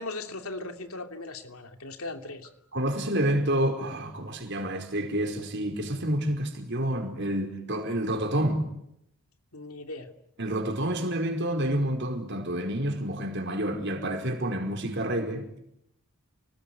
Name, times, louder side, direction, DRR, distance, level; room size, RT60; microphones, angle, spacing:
voice 1, 0.0-2.5 9.5-10.1, left 2 dB, 75° left, 3.0 m, -38 dB
voice 2, 2.7-8.7 10.4-15.6, right 1 dB, 50° right, 5.0 m, -29 dB
29.5 x 20.0 x 9.6 m
head